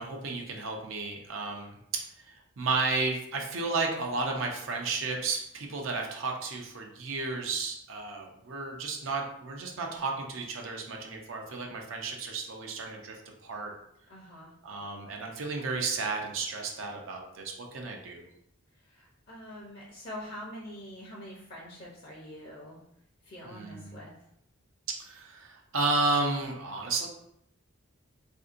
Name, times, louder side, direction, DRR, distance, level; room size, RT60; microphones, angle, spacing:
voice 1, 0.0-2.0 2.6-13.2 13.4-13.7 14.6-18.2 23.4-24.0 24.9-27.1, right 3 dB, 65° right, 1 dB, 0.5 m, -33 dB
voice 2, 14.1-14.5 18.8-22.8 23.2-24.1, left 1 dB, 45° left, -4 dB, 0.6 m, -44 dB
3.5 x 2.6 x 2.5 m, 0.77 s
head